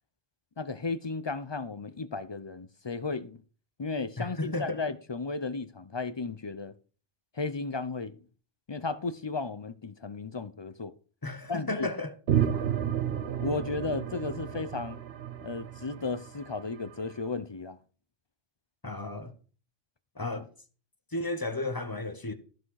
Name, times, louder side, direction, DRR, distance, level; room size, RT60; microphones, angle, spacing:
voice 1, 0.6-3.4 3.8-6.7 7.3-8.2 8.7-10.9 11.5-11.9 13.4-15.0 15.4-17.8, left 4 dB, 40° left, 0.3 m, -34 dB
voice 2, 4.2-4.8 11.2-12.1 18.8-19.3 20.2-20.5 21.1-22.3, left 2 dB, 20° left, 0.9 m, -33 dB
sound 1, 12.3-16.9, right 9 dB, 65° right, 0.9 m, -31 dB
14.0 x 6.0 x 4.7 m
omnidirectional pair, 1.2 m